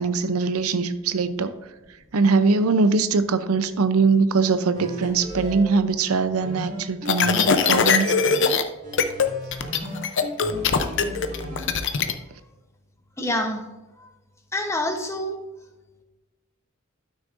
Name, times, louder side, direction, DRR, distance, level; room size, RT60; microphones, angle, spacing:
voice 1, 0.0-1.6 2.1-8.1, right 4 dB, 85° right, 11 dB, 0.6 m, -22 dB
sound 1, 4.7-5.6 6.4-8.4 8.8-11.8, left 1 dB, 40° right, 2.0 m, -36 dB
sound 2, 7.1-8.6 8.9-9.3 9.5-12.1, left 6 dB, 60° left, 0.6 m, -21 dB
voice 2, 13.2-13.6 14.0-14.1 14.5-15.4, left 1 dB, 15° left, 4 dB, 0.8 m, -26 dB
12.0 x 6.2 x 2.5 m, 1.1 s
head